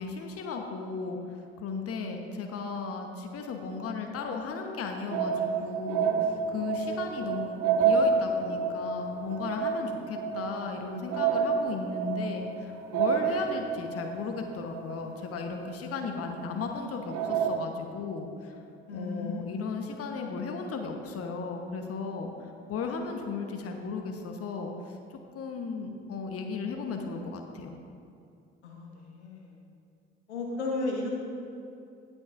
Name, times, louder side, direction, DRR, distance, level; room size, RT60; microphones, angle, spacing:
voice 1, 0.0-18.6 18.9-25.0 25.3-27.8, left 4 dB, 45° left, 3 dB, 1.1 m, -35 dB
sound 1, 5.1-16.0 16.4-16.5 17.1-17.6, right 5 dB, 60° right, 0.8 m, -29 dB
voice 2, 18.9-19.6 28.6-29.6 30.3-31.1, left 2 dB, 85° left, -1 dB, 1.4 m, -34 dB
19.0 x 6.3 x 2.5 m, 2.6 s
figure-of-eight pair, 50°, 33 cm